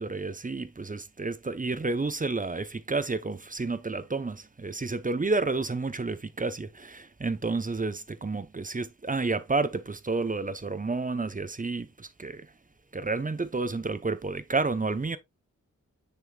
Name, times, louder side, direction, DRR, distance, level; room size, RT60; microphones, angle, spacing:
voice 1, 0.0-12.5 12.9-15.2, right 3 dB, 25° right, 0.7 m, -30 dB
6.9 x 6.7 x 2.3 m
wide cardioid pair, 85°, 31 cm